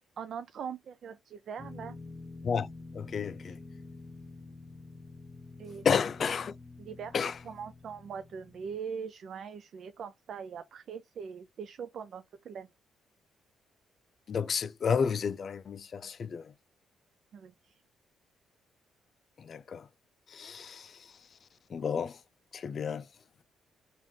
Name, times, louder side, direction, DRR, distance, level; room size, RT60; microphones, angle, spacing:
voice 1, 0.2-2.0 3.4-3.6 5.6-5.9 6.8-7.2 7.4-12.7 17.3-17.8, right 7 dB, 60° right, 0.4 m, -41 dB
sound 1, 1.6-8.8, left 3 dB, 25° left, 0.7 m, -48 dB
voice 2, 2.9-3.6 5.9-6.5 7.1-7.3 14.3-16.4 19.4-19.8 20.3-20.9 21.7-22.2 22.5-23.0, left 6 dB, 50° left, 0.4 m, -31 dB
3.7 x 2.5 x 3.1 m
cardioid pair, 90°, 0 cm